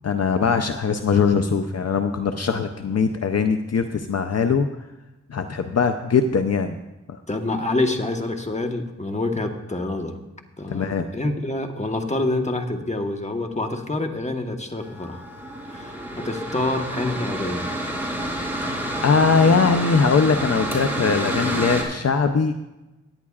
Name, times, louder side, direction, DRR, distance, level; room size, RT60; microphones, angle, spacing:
voice 1, 0.0-4.7 5.3-6.8 7.1-7.2 10.7-11.1 18.6-22.5, left 5 dB, 60° left, 7 dB, 0.6 m, -21 dB
voice 2, 7.3-10.2 10.6-15.2 15.7-17.6, left 2 dB, 25° left, 4 dB, 1.3 m, -27 dB
Mechanical fan, 14.8-21.8, right 1 dB, 5° right, 3.6 m, -28 dB
17.0 x 10.5 x 2.4 m, 1.0 s
wide cardioid pair, 60°, 29 cm